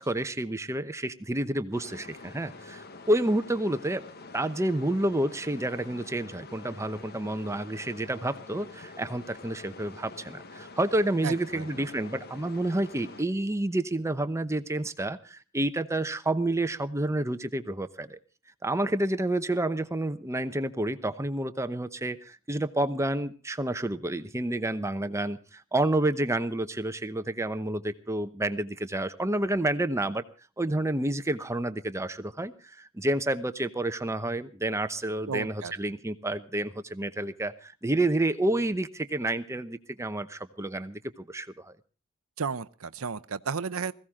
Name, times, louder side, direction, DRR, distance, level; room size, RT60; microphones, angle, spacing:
voice 1, 0.0-4.1 4.3-18.2 18.6-30.2 30.6-41.7, right 1 dB, 15° right, 0.9 m, -29 dB
sound 1, 1.7-13.2, left 3 dB, 50° left, 1.3 m, -46 dB
voice 2, 11.2-11.7 35.3-35.7 42.4-43.9, right 5 dB, 75° right, 0.7 m, -33 dB
21.0 x 15.5 x 3.7 m
head